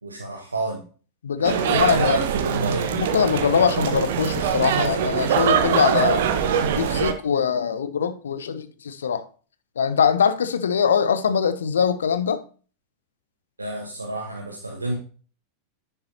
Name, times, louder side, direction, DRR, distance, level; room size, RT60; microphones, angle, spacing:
voice 1, 0.0-0.8 1.4-2.9 13.6-15.0, right 2 dB, 80° right, 1.2 m, -29 dB
voice 2, 1.2-2.2 2.9-6.2 6.7-9.2 9.8-12.4, left 7 dB, 65° left, 0.6 m, -22 dB
sound 1, 1.4-7.1, right 7 dB, 55° right, 0.9 m, -23 dB
10.0 x 5.6 x 2.8 m
figure-of-eight pair, 90°, 0 cm